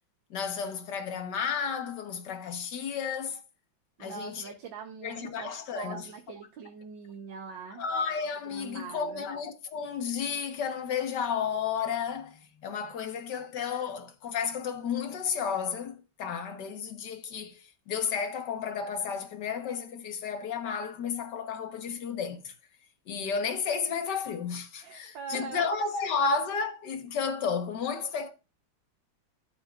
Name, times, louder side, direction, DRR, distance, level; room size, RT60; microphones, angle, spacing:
voice 1, 0.3-3.4 4.0-4.5 5.0-6.1 7.8-22.5 23.1-28.3, left 6 dB, 65° left, 1.8 m, -32 dB
voice 2, 4.0-7.8 8.5-9.3 12.8-13.0 24.8-25.7 26.0-26.2 28.0-28.1, right 6 dB, 80° right, 1.7 m, -43 dB
13.0 x 8.0 x 2.4 m
omnidirectional pair, 2.0 m